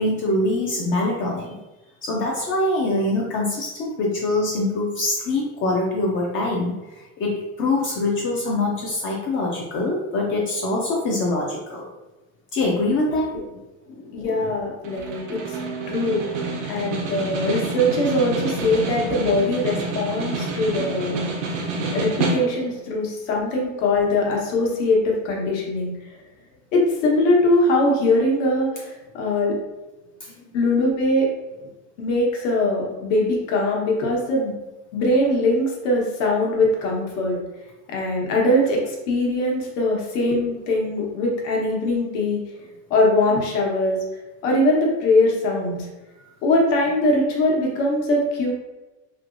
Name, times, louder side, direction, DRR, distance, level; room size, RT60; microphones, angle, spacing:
voice 1, 0.0-1.6 2.0-11.9 12.5-13.6 13.9-14.5 21.8-21.9 30.2-30.5, left 2 dB, 35° left, -1 dB, 0.4 m, -24 dB
voice 2, 14.1-15.6 15.9-16.2 16.7-21.2 21.9-25.9 26.7-29.6 30.5-31.3 32.0-34.5 34.9-37.4 37.9-42.4 42.9-44.0 44.4-45.8 46.4-48.5, left 1 dB, 80° left, -2 dB, 1.1 m, -21 dB
Snare drum, 14.8-22.8, right 3 dB, 85° right, 0.8 m, -28 dB
3.1 x 2.9 x 2.5 m, 1.1 s
cardioid pair, 150°, 37 cm